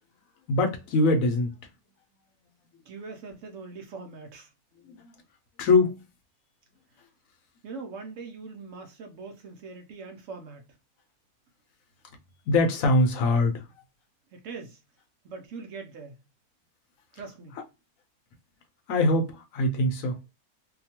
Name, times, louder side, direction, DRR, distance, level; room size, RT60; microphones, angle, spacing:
voice 1, 0.5-1.5 4.8-4.9 5.6-6.0 12.5-13.7 18.9-20.2, left 2 dB, 70° left, 0.9 m, -23 dB
voice 2, 2.9-4.5 7.6-10.7 14.3-14.8 15.2-16.2 17.1-17.6, right 4 dB, 65° right, 0.9 m, -42 dB
2.7 x 2.2 x 2.8 m
omnidirectional pair, 1.6 m